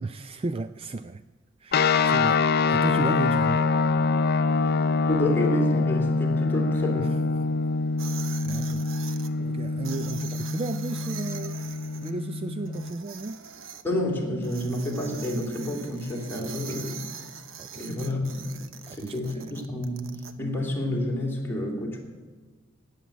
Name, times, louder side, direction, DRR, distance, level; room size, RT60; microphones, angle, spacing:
voice 1, 0.0-1.2 1.6-2.4 2.7-3.6 7.0-7.1 8.4-11.6 12.0-13.4 16.4-16.8 17.6-17.8 18.9-19.5, right 3 dB, 30° right, 12 dB, 0.4 m, -34 dB
sound 1, 1.7-12.9, left 4 dB, 50° left, 0.5 m, -25 dB
voice 2, 4.6-7.2 13.8-17.0 17.8-18.6 18.9-22.0, left 1 dB, 10° left, -1 dB, 3.0 m, -29 dB
sound 2, 8.0-9.3 9.8-12.1 12.7-13.8 14.4-20.3, right 7 dB, 75° right, 1.0 m, -42 dB
17.5 x 7.4 x 9.4 m, 1.4 s
head